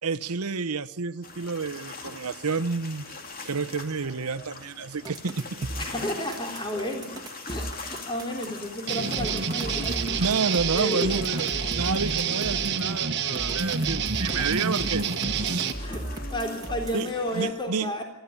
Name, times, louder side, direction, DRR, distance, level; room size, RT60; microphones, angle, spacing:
voice 1, 0.0-3.1 3.4-5.7 10.2-15.0 15.4-15.8 16.9-17.9, right 4 dB, 85° right, 0.9 m, -30 dB
sound 1, 1.2-17.5, left 3 dB, 40° left, 2.4 m, -42 dB
sound 2, 5.0-8.6 9.1-12.8 13.3-17.1, right 1 dB, 15° right, 2.1 m, -36 dB
voice 2, 5.8-10.4 10.7-11.2 14.3-14.5 15.8-18.0, equal, 20° left, 3.4 m, -32 dB
sound 3, 8.9-15.7, right 6 dB, 50° right, 1.4 m, -28 dB
24.0 x 15.0 x 8.5 m
head